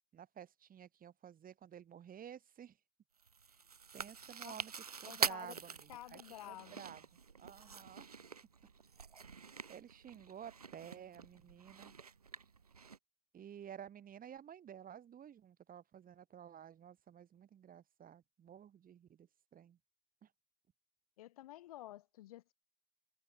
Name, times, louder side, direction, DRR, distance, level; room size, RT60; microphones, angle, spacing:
voice 1, 0.1-2.8 3.5-3.6 3.9-4.7 5.0-6.2 6.4-7.0 7.4-8.2 9.7-11.9 13.3-19.8 20.2-20.3, right 9 dB, 50° right, 3.4 m, -53 dB
Chewing mastication, 3.2-13.0, right 5 dB, 90° right, 0.5 m, -45 dB
voice 2, 5.0-5.5 5.9-6.8 21.2-22.5, left 15 dB, 75° left, 2.5 m, -51 dB
figure-of-eight pair, 45°, 19 cm